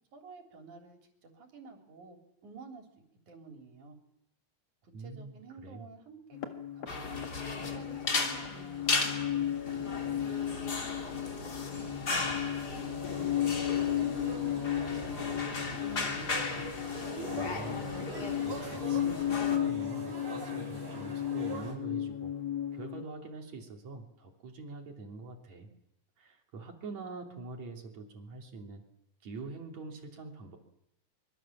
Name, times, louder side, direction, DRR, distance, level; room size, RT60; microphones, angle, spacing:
voice 1, 0.1-4.0 4.8-6.4 6.7-7.2 7.5-9.5 9.8-10.3 11.4-15.9, right 4 dB, 90° right, 4 dB, 5.0 m, -51 dB
voice 2, 4.9-5.8 17.3-22.3 22.7-25.7 26.2-28.8 29.2-30.6, right 3 dB, 70° right, 3 dB, 4.4 m, -45 dB
sound 1, 6.3-23.0, left 11 dB, 60° left, 2.9 m, -35 dB
sound 2, 6.9-19.6, left 3 dB, 35° left, 3.1 m, -36 dB
sound 3, 13.0-21.7, right 2 dB, 45° right, 7.8 m, -43 dB
25.0 x 23.5 x 7.5 m, 0.81 s
omnidirectional pair, 3.4 m